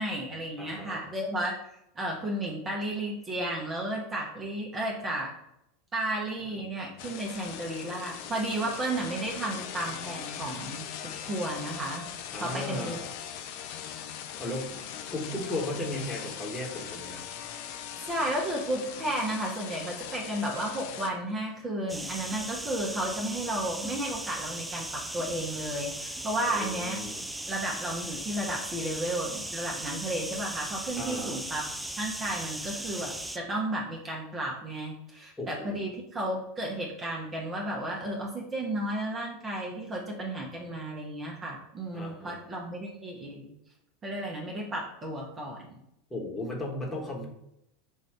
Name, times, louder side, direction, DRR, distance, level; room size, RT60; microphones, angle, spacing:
voice 1, 0.0-1.5 2.0-5.3 5.9-12.0 12.4-13.0 18.0-27.0 27.5-31.7 32.0-43.5 44.0-45.8, right 1 dB, 25° right, -1 dB, 0.8 m, -33 dB
voice 2, 0.6-1.0 12.3-13.0 14.4-14.7 15.1-17.2 26.5-27.2 31.0-31.4 35.4-35.8 41.9-42.4 46.1-47.3, left 1 dB, 10° left, -3 dB, 1.2 m, -35 dB
sound 1, 7.0-21.1, left 9 dB, 55° left, 0.5 m, -40 dB
sound 2, 21.9-33.4, right 1 dB, 5° right, 0.3 m, -38 dB
5.3 x 2.5 x 3.4 m, 0.81 s
figure-of-eight pair, 80°, 0 cm